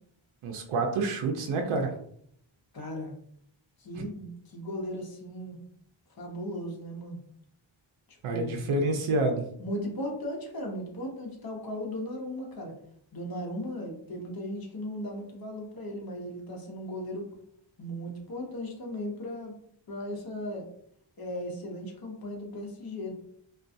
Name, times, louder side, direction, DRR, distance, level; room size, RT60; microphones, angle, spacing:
voice 1, 0.4-1.9 8.2-9.4, right 2 dB, 80° right, 4 dB, 0.5 m, -28 dB
voice 2, 2.7-3.1 3.8-5.6 6.2-7.2 8.1-8.6 9.6-12.7 13.1-17.3 17.8-19.6 19.9-20.6 21.2-23.1, equal, 50° left, 0 dB, 0.7 m, -37 dB
2.4 x 2.2 x 2.5 m, 0.67 s
wide cardioid pair, 125°, 48 cm